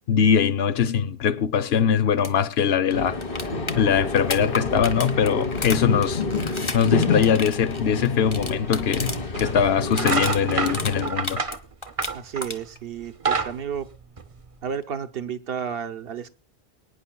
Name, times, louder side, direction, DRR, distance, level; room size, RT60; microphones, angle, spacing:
voice 1, 0.1-3.2 3.8-11.4, left 7 dB, 75° left, 1.0 m, -22 dB
sound 1, 2.2-2.3 2.6-2.7 2.9-9.5 9.7-11.6 11.8-12.8 14.8-14.9, left 3 dB, 30° left, 1.0 m, -33 dB
sound 2, 2.9-11.1, left 3 dB, 60° left, 1.6 m, -29 dB
sound 3, 8.6-8.7 9.3-9.5 9.9-12.6 13.0-14.7, right 4 dB, 35° right, 0.8 m, -27 dB
voice 2, 12.1-13.9 14.6-16.3, right 8 dB, 65° right, 1.0 m, -32 dB
24.5 x 9.6 x 2.3 m
omnidirectional pair, 1.1 m